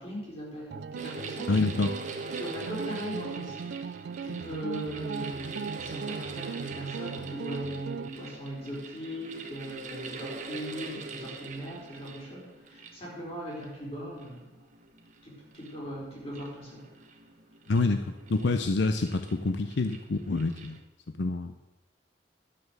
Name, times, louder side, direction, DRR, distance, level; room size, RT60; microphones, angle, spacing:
voice 1, 0.0-1.5 2.3-3.6 4.2-14.5 15.2-16.9, equal, 30° left, -5 dB, 4.7 m, -39 dB
sound 1, 0.7-8.1, right 6 dB, 60° right, 0.3 m, -38 dB
sound 2, 1.0-20.8, right 3 dB, 40° right, 1.1 m, -43 dB
voice 2, 1.5-1.9 17.7-20.8 21.2-21.5, left 3 dB, 70° left, 9 dB, 0.6 m, -27 dB
11.5 x 7.9 x 6.7 m, 1.0 s
head